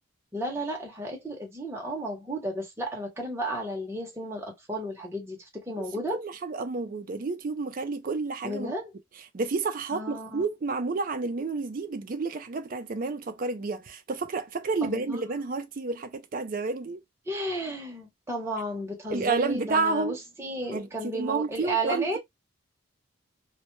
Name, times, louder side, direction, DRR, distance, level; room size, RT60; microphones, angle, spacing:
voice 1, 0.3-6.2 8.4-8.9 9.9-10.4 14.8-15.3 17.3-22.2, right 1 dB, 10° right, 0.7 m, -33 dB
voice 2, 6.1-8.7 9.3-17.0 19.1-20.2 20.7-20.9 21.1-22.2, right 4 dB, 40° right, 0.4 m, -30 dB
2.1 x 2.0 x 2.9 m
head